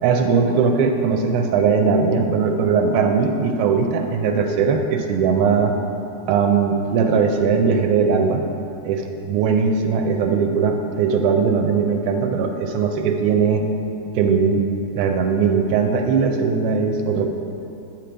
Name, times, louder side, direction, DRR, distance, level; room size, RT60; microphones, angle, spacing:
voice 1, 0.0-5.7 6.3-8.4 8.8-13.7 14.1-14.7 15.0-17.3, right 5 dB, 85° right, 3 dB, 1.5 m, -19 dB
9.0 x 4.6 x 5.0 m, 2.8 s
omnidirectional pair, 2.4 m